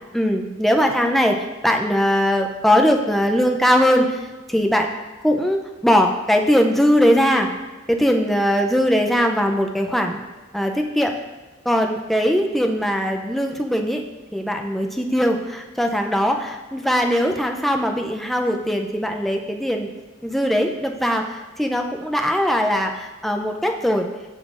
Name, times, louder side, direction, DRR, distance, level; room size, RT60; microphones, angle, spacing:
voice 1, 0.1-4.2 4.5-4.9 5.2-7.5 7.9-10.2 10.5-11.1 11.7-14.0 14.3-19.9 20.2-21.2 21.6-24.1, equal, ahead, 3 dB, 0.4 m, -20 dB
10.5 x 3.7 x 2.5 m, 1.2 s
head